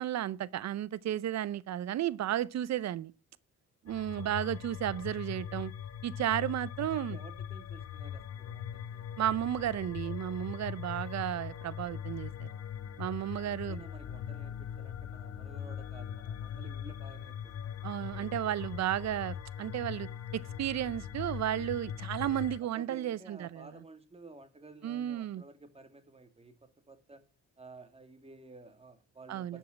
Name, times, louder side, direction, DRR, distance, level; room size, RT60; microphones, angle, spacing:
voice 1, 0.0-3.1 3.8-5.7 6.0-7.2 9.2-12.5 13.0-13.8 17.8-23.7 24.8-25.4 29.3-29.6, right 12 dB, 60° right, 0.7 m, -33 dB
sound 1, 3.9-22.6, left 9 dB, 55° left, 1.0 m, -41 dB
voice 2, 6.9-9.2 13.4-18.6 22.2-27.2 27.6-29.6, right 3 dB, 20° right, 2.2 m, -54 dB
11.5 x 5.6 x 7.4 m
cardioid pair, 90°, 30 cm